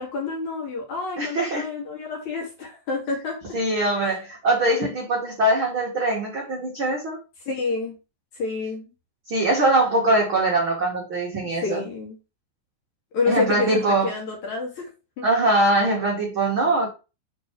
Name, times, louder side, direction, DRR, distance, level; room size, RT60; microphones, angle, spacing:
voice 1, 0.0-3.4 7.4-8.0 8.3-8.8 11.6-12.2 13.1-14.9 15.2-15.3, left 4 dB, 50° left, 3.1 m, -28 dB
voice 2, 1.2-1.7 3.5-7.2 9.3-11.8 13.3-14.1 15.2-16.9, right 2 dB, 50° right, 1.5 m, -22 dB
7.2 x 4.4 x 4.6 m
omnidirectional pair, 5.0 m